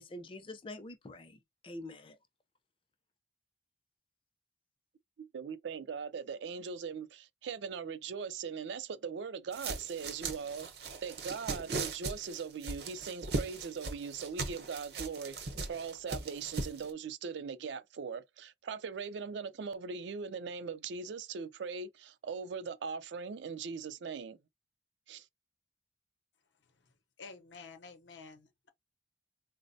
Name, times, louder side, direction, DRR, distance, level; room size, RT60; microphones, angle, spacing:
voice 1, 0.0-2.2, left 1 dB, 30° left, 0.4 m, -46 dB
voice 2, 5.2-24.4 25.1-25.2, right 5 dB, 80° right, 0.4 m, -40 dB
sound 1, 9.5-16.9, right 3 dB, 60° right, 0.7 m, -39 dB
voice 3, 27.2-28.7, left 4 dB, 90° left, 0.6 m, -50 dB
4.0 x 2.0 x 2.6 m
head